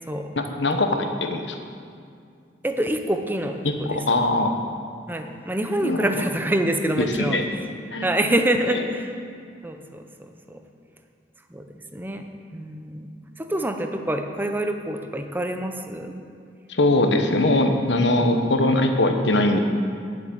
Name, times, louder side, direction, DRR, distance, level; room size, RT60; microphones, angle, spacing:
voice 1, 0.4-1.6 3.6-4.5 5.8-6.1 6.9-7.5 7.9-8.1 8.7-8.8 16.7-19.6, left 2 dB, 85° left, 5 dB, 1.2 m, -21 dB
voice 2, 2.6-4.0 5.1-7.4 8.0-9.1 9.6-10.6 11.5-11.6 11.9-12.2 12.5-13.1 13.4-16.1, right 1 dB, 10° right, 5 dB, 0.8 m, -26 dB
10.0 x 8.3 x 8.8 m, 2.3 s
head